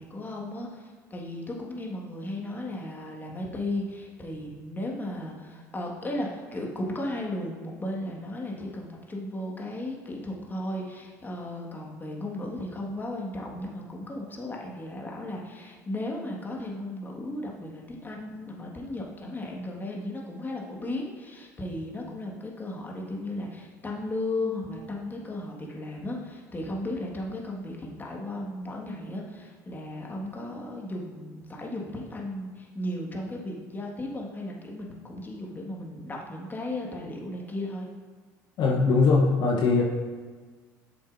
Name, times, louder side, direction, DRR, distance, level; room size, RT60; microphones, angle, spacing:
voice 1, 0.0-37.9, left 1 dB, 20° left, -1 dB, 1.7 m, -35 dB
voice 2, 38.6-39.8, left 4 dB, 55° left, -2 dB, 0.9 m, -21 dB
8.8 x 7.0 x 2.6 m, 1.5 s
hypercardioid pair, 70°, 9 cm